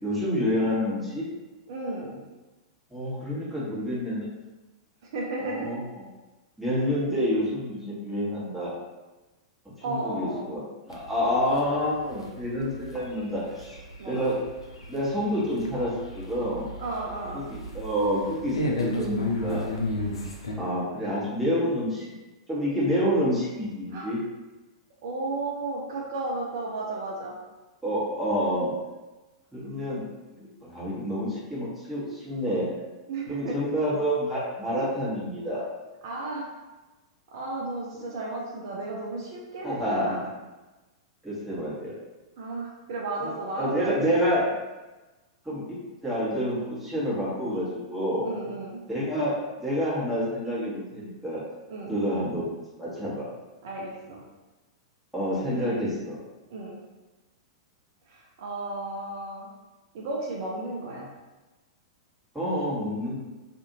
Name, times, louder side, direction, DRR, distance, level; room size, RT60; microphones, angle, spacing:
voice 1, 0.0-1.2 2.9-4.3 5.4-6.1 6.6-8.7 9.8-13.8 14.1-14.3 14.9-16.7 17.3-19.6 20.6-22.1 22.5-24.2 27.8-28.7 29.5-30.0 30.4-32.7 33.3-35.7 39.6-40.2 41.2-41.9 43.2-44.4 45.4-45.8 46.0-48.3 48.9-51.4 51.9-53.3 55.1-56.2 62.3-63.2, equal, 5° right, -10 dB, 1.2 m, -28 dB
voice 2, 1.7-2.2 5.1-5.7 9.8-10.5 14.0-14.2 16.8-17.5 23.9-24.1 25.0-27.4 33.1-33.6 36.0-36.5 37.3-40.2 42.4-44.4 48.2-48.8 51.7-51.9 53.6-54.2 56.5-56.8 58.0-59.5 59.9-61.1, right 2 dB, 50° right, -2 dB, 0.5 m, -34 dB
sound 1, 10.9-20.5, left 1 dB, 75° left, 0.5 m, -34 dB
2.6 x 2.5 x 2.7 m, 1.1 s
figure-of-eight pair, 100°, 3 cm